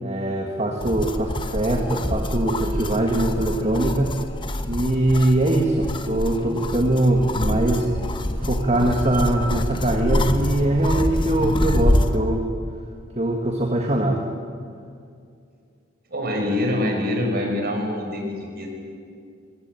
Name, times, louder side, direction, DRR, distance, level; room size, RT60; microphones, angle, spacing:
voice 1, 0.0-4.1 4.7-7.9 8.4-12.5 13.2-14.2, right 1 dB, 30° right, 2 dB, 1.8 m, -22 dB
sound 1, 0.8-12.2, left 1 dB, 25° left, 1.2 m, -25 dB
voice 2, 16.1-18.7, left 1 dB, 50° right, 3 dB, 5.3 m, -25 dB
23.0 x 20.0 x 9.1 m, 2.3 s
head